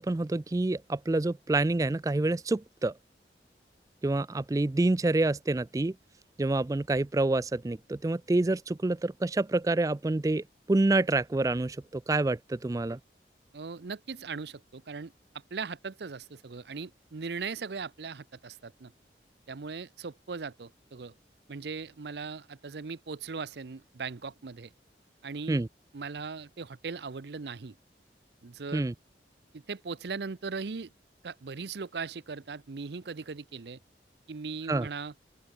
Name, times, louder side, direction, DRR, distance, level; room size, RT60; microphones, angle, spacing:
voice 1, 0.0-2.9 4.0-5.9 6.4-13.0 25.5-25.7 28.7-28.9 34.7-34.9, right 2 dB, 20° right, 0.3 m, -27 dB
voice 2, 13.5-15.1 15.5-18.9 19.5-21.1 21.5-24.7 25.2-25.6 25.9-27.8 28.4-28.9 29.5-30.9 31.2-33.8 34.3-35.1, right 4 dB, 70° right, 0.6 m, -39 dB
open air
head